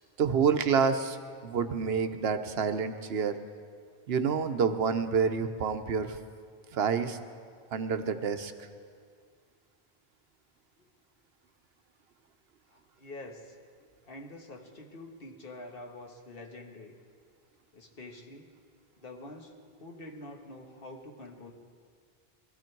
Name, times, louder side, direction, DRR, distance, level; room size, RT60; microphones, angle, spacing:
voice 1, 0.2-1.2 1.4-3.3 4.1-6.2 6.7-7.2 7.7-8.5, right 6 dB, 75° right, 9 dB, 1.0 m, -28 dB
voice 2, 12.7-13.5 14.1-16.9 17.7-18.5 19.0-21.5, left 2 dB, 60° left, 2 dB, 1.6 m, -46 dB
21.0 x 13.0 x 4.6 m, 2.1 s
omnidirectional pair, 1.1 m